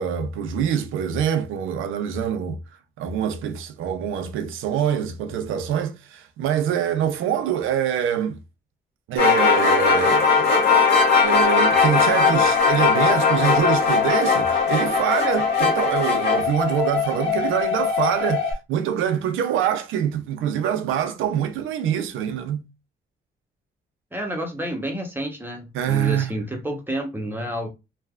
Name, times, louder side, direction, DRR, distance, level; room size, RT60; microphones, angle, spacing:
voice 1, 0.0-2.6 3.0-8.4 9.1-10.7 11.2-22.7 25.7-26.4, right 9 dB, 85° right, 0.6 m, -25 dB
sound 1, 9.2-16.4, left 5 dB, 55° left, 1.4 m, -19 dB
sound 2, 11.2-18.5, left 6 dB, 70° left, 0.8 m, -25 dB
voice 2, 24.1-27.7, right 1 dB, 10° right, 0.9 m, -29 dB
3.1 x 2.3 x 2.3 m
cardioid pair, 90°, 20 cm